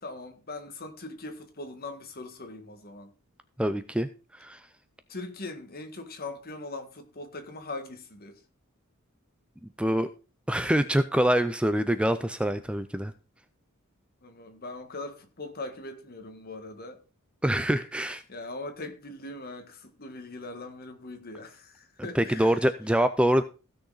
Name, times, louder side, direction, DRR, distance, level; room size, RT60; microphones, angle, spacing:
voice 1, 0.0-3.1 5.1-8.4 14.2-17.0 18.3-22.6, left 2 dB, 45° left, 1.6 m, -40 dB
voice 2, 3.6-4.1 4.4-4.6 9.6-10.1 10.5-13.1 17.4-18.2 22.1-23.4, equal, 5° right, 0.5 m, -25 dB
16.0 x 6.4 x 4.0 m
head